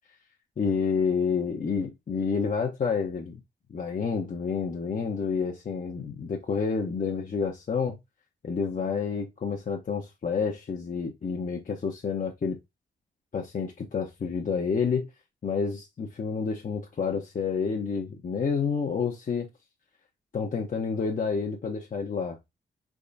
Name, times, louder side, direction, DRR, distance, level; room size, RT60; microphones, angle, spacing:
voice 1, 0.6-3.4 3.7-8.0 8.4-12.6 13.3-15.1 15.4-19.5 20.3-22.4, left 5 dB, 45° left, 0.9 m, -29 dB
4.2 x 3.6 x 2.6 m
supercardioid pair, 60°, 19 cm